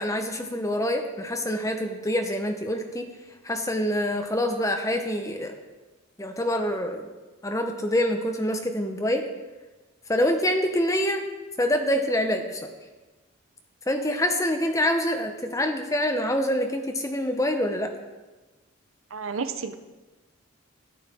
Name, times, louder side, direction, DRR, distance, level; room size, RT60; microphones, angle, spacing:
voice 1, 0.0-3.0 3.4-5.5 6.2-7.1 7.4-9.3 10.1-11.2 11.6-12.7 13.9-17.9, equal, 15° left, 5 dB, 0.7 m, -26 dB
voice 2, 19.1-19.7, right 5 dB, 75° right, 10 dB, 0.6 m, -31 dB
12.5 x 7.8 x 3.6 m, 1.2 s
head